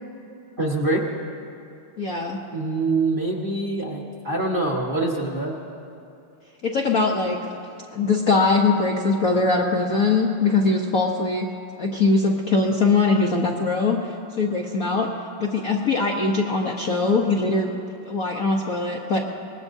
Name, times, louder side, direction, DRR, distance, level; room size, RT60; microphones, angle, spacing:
voice 1, 0.6-1.0 2.5-5.6, right 2 dB, 25° right, -3 dB, 1.4 m, -24 dB
voice 2, 2.0-2.4 6.6-7.5 7.9-11.5 11.8-15.1 15.4-17.7 18.0-19.2, left 3 dB, 50° left, -1 dB, 1.1 m, -21 dB
25.0 x 20.5 x 2.7 m, 2.6 s
omnidirectional pair, 2.4 m